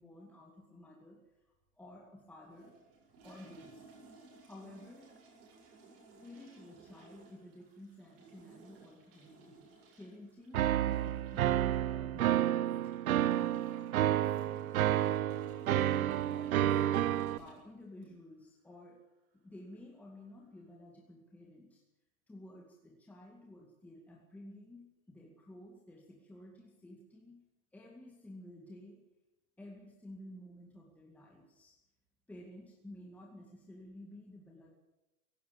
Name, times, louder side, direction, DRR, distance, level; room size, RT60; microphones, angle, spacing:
voice 1, 0.0-2.7 3.2-3.9 4.4-5.1 6.2-9.6 10.0-12.7 13.1-14.4 15.7-19.0 19.3-21.8 22.3-27.4 27.7-29.0 29.6-31.8 32.3-34.7, left 1 dB, 5° left, -2 dB, 2.2 m, -53 dB
sound 1, 2.5-18.4, right 3 dB, 40° right, 7.9 m, -58 dB
sound 2, 10.5-17.4, right 12 dB, 75° right, 1.1 m, -30 dB
18.0 x 16.5 x 8.6 m, 0.96 s
supercardioid pair, 160°, 42 cm